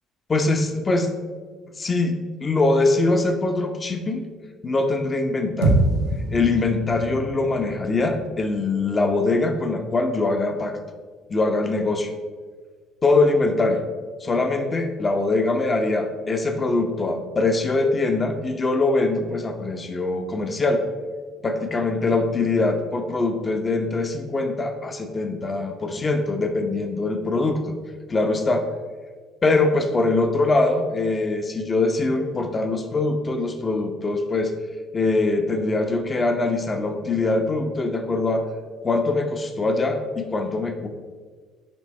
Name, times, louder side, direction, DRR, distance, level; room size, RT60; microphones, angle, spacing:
voice 1, 0.3-1.1 1.8-4.2 4.6-5.8 6.3-10.8 11.3-12.1 13.0-13.8 14.2-20.8 21.4-27.6 28.1-28.6 29.4-34.5 34.9-38.4 38.8-40.9, left 3 dB, 30° left, 6 dB, 0.9 m, -23 dB
sound 1, 5.6-10.0, right 2 dB, 70° right, 1.0 m, -26 dB
9.9 x 3.4 x 4.3 m, 1.5 s
figure-of-eight pair, 50°, 0 cm